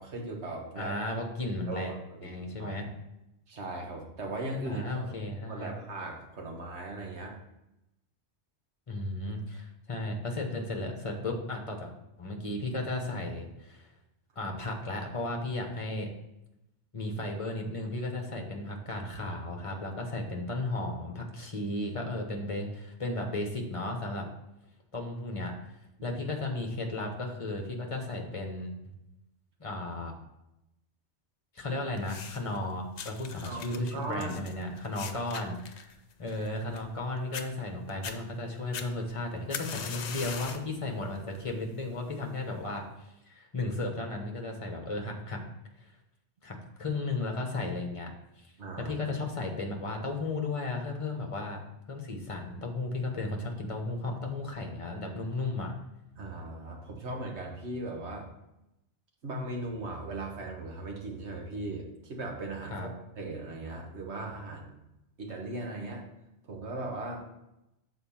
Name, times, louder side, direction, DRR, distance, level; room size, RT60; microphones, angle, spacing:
voice 1, 0.0-1.0 1.7-2.8 3.5-5.1 5.5-7.4 26.0-26.2 33.4-34.4 48.6-48.9 56.1-58.3 59.2-64.8 65.2-66.0 66.5-67.3, right 2 dB, 70° right, 0 dB, 1.6 m, -38 dB
voice 2, 0.8-1.9 2.2-2.9 4.6-5.7 8.9-11.9 12.2-13.9 14.4-16.1 16.9-24.3 24.9-25.5 26.0-28.9 29.6-30.1 31.5-35.9 36.2-45.4 46.4-48.1 48.4-48.5 48.8-51.6 51.9-55.7 62.7-62.9, left 2 dB, 30° left, 3 dB, 1.1 m, -34 dB
sound 1, 32.0-32.6 33.0-37.0 37.3-37.5 37.9-38.2 38.7-40.7 41.2-41.5 42.3-42.4, left 7 dB, 75° left, 0.9 m, -40 dB
6.8 x 4.2 x 5.6 m, 0.88 s
omnidirectional pair, 1.2 m